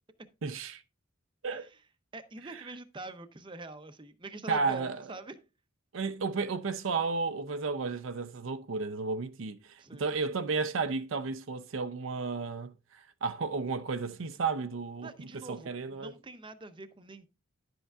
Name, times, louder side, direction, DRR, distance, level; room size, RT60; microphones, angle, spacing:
voice 1, 0.4-0.8 1.4-1.7 2.4-2.7 4.5-5.1 5.9-16.1, right 4 dB, 70° right, 0.5 m, -33 dB
voice 2, 2.1-5.4 9.8-10.1 15.0-17.3, right 2 dB, 25° right, 0.6 m, -45 dB
11.0 x 7.9 x 2.3 m
head